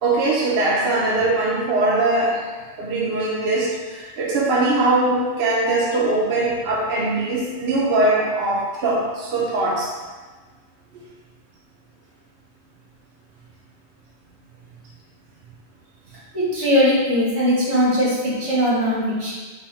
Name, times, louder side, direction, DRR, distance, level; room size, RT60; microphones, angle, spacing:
voice 1, 0.0-2.4 2.8-9.9, right 2 dB, 65° right, -4 dB, 0.8 m, -21 dB
voice 2, 16.3-19.3, equal, 85° right, -8 dB, 1.6 m, -20 dB
4.0 x 2.2 x 4.1 m, 1.3 s
omnidirectional pair, 1.1 m